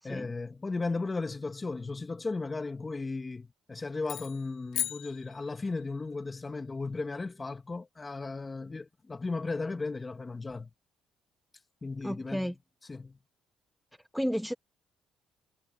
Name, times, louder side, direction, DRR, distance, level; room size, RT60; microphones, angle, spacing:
voice 1, 0.0-10.7 11.8-12.5 12.9-13.2, left 3 dB, 20° left, 2.0 m, -35 dB
sound 1, 4.0-6.0, left 12 dB, 75° left, 2.5 m, -37 dB
voice 2, 12.0-12.5 14.1-14.5, equal, ahead, 1.1 m, -32 dB
cardioid pair, 100°, 0 cm